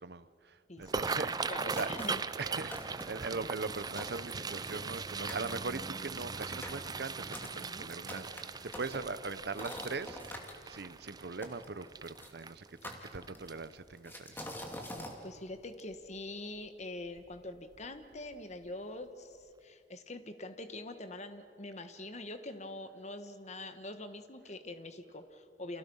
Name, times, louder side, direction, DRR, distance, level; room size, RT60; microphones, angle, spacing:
voice 1, 0.0-1.9 2.3-14.5, right 3 dB, 60° right, 14 dB, 0.9 m, -41 dB
voice 2, 0.7-2.2 7.6-7.9 14.9-25.8, left 2 dB, 40° left, 9 dB, 1.4 m, -44 dB
sound 1, 0.8-13.9 14.4-14.6 15.0-15.4 15.8-15.9 17.2-17.4 17.7-17.8 18.3-18.4, right 4 dB, 20° right, 0.5 m, -40 dB
sound 2, 1.8-2.3 2.7-3.3 3.7-3.8 4.0-5.0 5.3-5.5 6.1-10.5 11.4-12.3 12.8-13.6 14.1-15.2, left 1 dB, 10° left, 2.5 m, -45 dB
30.0 x 27.0 x 5.6 m, 2.4 s
head